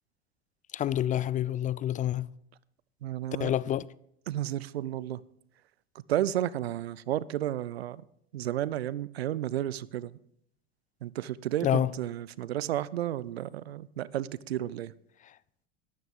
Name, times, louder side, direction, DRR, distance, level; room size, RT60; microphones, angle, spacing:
voice 1, 0.7-2.3 3.4-3.9 11.6-11.9, left 11 dB, 25° left, 0.4 m, -27 dB
voice 2, 3.0-3.6 4.3-5.2 6.1-8.0 8.3-10.1 11.0-14.9, right 12 dB, 85° right, 0.5 m, -32 dB
12.5 x 12.5 x 3.7 m
hypercardioid pair, 80°, 31 cm